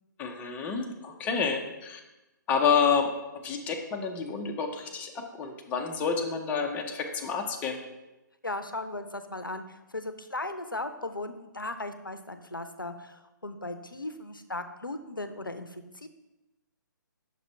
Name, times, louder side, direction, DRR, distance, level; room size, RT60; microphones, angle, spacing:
voice 1, 0.2-2.0 2.5-7.8, left 6 dB, 15° left, 3 dB, 0.5 m, -29 dB
voice 2, 8.4-16.1, left 2 dB, 85° left, 9 dB, 0.5 m, -37 dB
6.0 x 4.1 x 4.4 m, 1.0 s
figure-of-eight pair, 130°, 11 cm